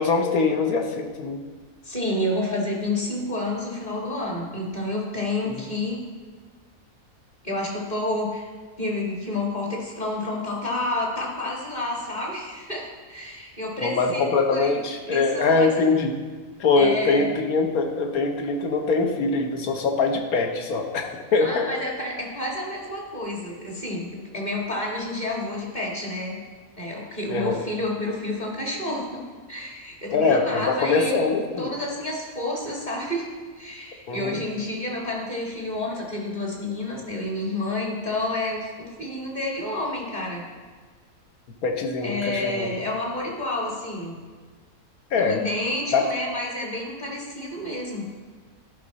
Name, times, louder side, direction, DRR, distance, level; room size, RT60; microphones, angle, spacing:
voice 1, 0.0-1.4 5.6-5.7 13.8-16.2 16.6-21.7 27.3-27.5 30.1-31.7 34.1-34.4 41.6-42.7 45.1-45.4 45.9-46.1, left 4 dB, 70° left, 4 dB, 1.3 m, -23 dB
voice 2, 1.8-6.0 7.4-8.5 8.8-14.8 15.1-15.9 16.8-17.3 21.4-26.4 26.8-29.0 29.5-31.2 31.6-33.3 33.5-40.4 42.0-44.2 45.1-48.1, left 1 dB, 30° left, -2 dB, 1.8 m, -29 dB
12.0 x 5.1 x 4.1 m, 1.5 s
omnidirectional pair, 1.7 m